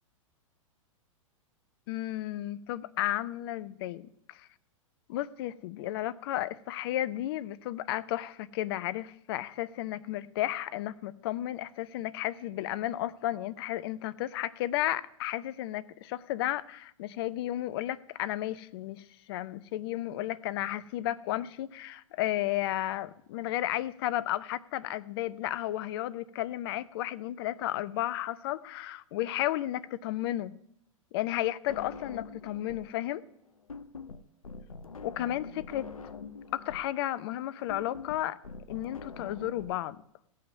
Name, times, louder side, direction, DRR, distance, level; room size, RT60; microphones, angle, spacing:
voice 1, 1.9-4.5 5.1-19.0 19.3-30.5 31.1-33.2 35.0-35.9 36.5-38.4 38.7-40.0, left 14 dB, 45° left, 16 dB, 0.7 m, -33 dB
sound 1, 31.7-33.0 33.2-39.7, left 4 dB, 80° left, 0.8 m, -44 dB
16.0 x 5.7 x 7.0 m, 0.73 s
figure-of-eight pair, 100°, 18 cm